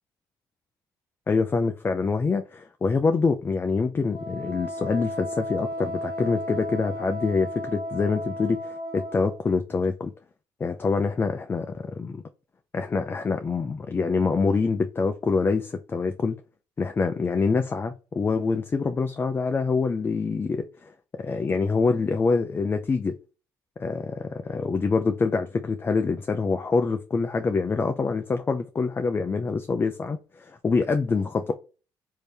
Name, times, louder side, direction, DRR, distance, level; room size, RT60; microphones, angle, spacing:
voice 1, 1.3-10.1 10.6-12.2 12.7-16.4 16.8-20.9 21.2-23.1 23.8-31.5, left 4 dB, 25° left, 0.3 m, -25 dB
Wind instrument woodwind instrument, 4.1-9.4, equal, 65° left, 1.0 m, -34 dB
3.3 x 2.7 x 3.3 m
supercardioid pair, 75°, 9 cm